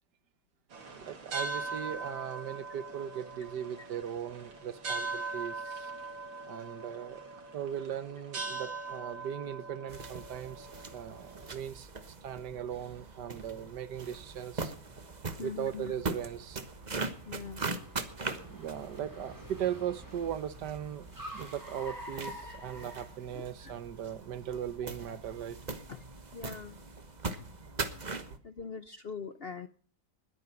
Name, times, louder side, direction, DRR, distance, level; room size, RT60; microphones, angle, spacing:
sound 1, 0.7-11.6, right 3 dB, 90° right, 3.3 m, -41 dB
voice 1, 0.9-5.9 6.5-14.7 15.4-16.6 18.4-25.8, right 9 dB, 65° right, 1.4 m, -39 dB
sound 2, 9.9-28.4, right 3 dB, 25° right, 1.1 m, -41 dB
Car, 13.9-23.8, equal, 10° right, 3.8 m, -49 dB
voice 2, 15.4-16.0 17.2-17.6 23.3-23.7 25.9-26.0 26.3-26.8 28.1-29.7, left 6 dB, 60° left, 0.6 m, -42 dB
20.5 x 9.2 x 5.8 m
omnidirectional pair, 2.1 m